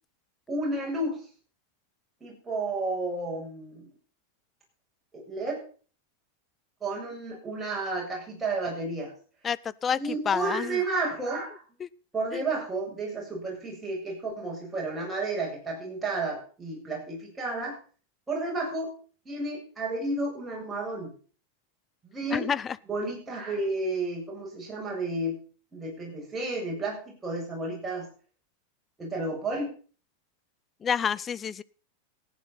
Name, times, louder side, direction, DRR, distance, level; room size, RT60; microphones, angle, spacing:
voice 1, 0.5-1.2 2.2-3.9 5.1-5.6 6.8-9.1 10.0-11.5 12.1-17.8 18.3-18.9 19.2-21.1 22.1-22.5 22.9-25.4 25.7-28.1 29.0-29.7, right 2 dB, 10° right, -3 dB, 7.8 m, -32 dB
voice 2, 10.3-10.8 11.8-11.9 12.3-12.4 22.3-22.6 30.8-31.6, left 7 dB, 20° left, 18 dB, 0.5 m, -28 dB
15.0 x 9.9 x 5.7 m, 0.41 s
figure-of-eight pair, 90°, 0 cm